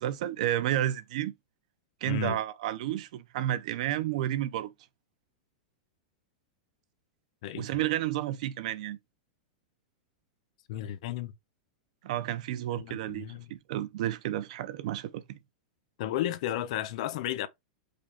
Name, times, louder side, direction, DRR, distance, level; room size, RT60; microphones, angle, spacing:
voice 1, 0.0-1.3 2.0-4.7 7.5-9.0 12.0-15.4, right 13 dB, 60° right, 0.5 m, -31 dB
voice 2, 2.1-2.4 7.4-7.8 10.7-11.3 12.8-13.5 16.0-17.5, left 12 dB, 55° left, 0.6 m, -33 dB
5.1 x 2.3 x 4.2 m
supercardioid pair, 155°, 4 cm